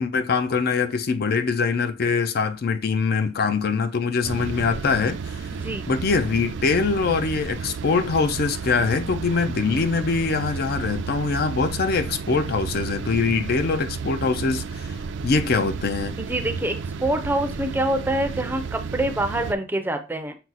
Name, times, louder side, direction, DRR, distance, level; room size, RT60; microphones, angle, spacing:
voice 1, 0.0-5.5 5.9-15.0 15.2-16.1, left 4 dB, 55° left, 0.4 m, -23 dB
sound 1, 4.2-19.5, right 5 dB, 70° right, 0.4 m, -32 dB
voice 2, 5.5-5.9 16.2-20.3, right 1 dB, 10° right, 0.5 m, -26 dB
6.0 x 2.0 x 4.0 m
head